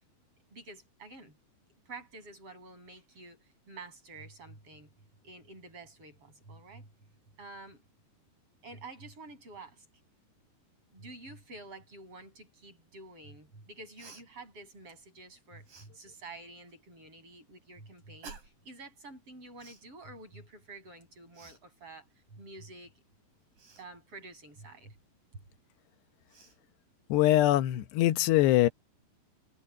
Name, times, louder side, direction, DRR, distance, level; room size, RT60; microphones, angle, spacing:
voice 1, 0.5-1.4 1.9-4.9 5.2-6.9 7.4-7.8 8.6-9.9 10.9-22.9 23.8-25.0, right 2 dB, 30° right, 8.9 m, -49 dB
Cough, 14.0-14.2 15.7-15.9 18.2-18.7 19.6-19.9 21.3-21.6 23.6-23.9 25.7-25.8 26.3-26.6, right 4 dB, 50° right, 6.7 m, -50 dB
voice 2, 27.1-28.7, left 15 dB, 80° left, 3.1 m, -23 dB
omnidirectional pair, 4.8 m